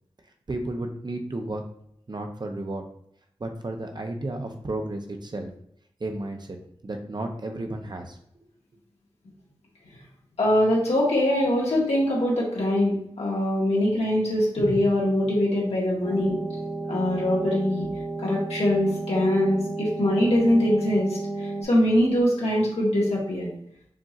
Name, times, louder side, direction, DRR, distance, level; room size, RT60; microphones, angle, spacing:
voice 1, 0.5-1.6 2.1-2.8 3.4-5.5 6.0-6.6 6.8-8.2, right 2 dB, 45° right, 4 dB, 0.6 m, -32 dB
voice 2, 10.4-16.4 16.9-17.9 18.2-23.5, left 1 dB, 75° left, -4 dB, 1.4 m, -23 dB
sound 1, 16.0-21.6, right 2 dB, 10° right, 1.1 m, -32 dB
5.0 x 2.8 x 2.4 m, 0.71 s
cardioid pair, 40°, 11 cm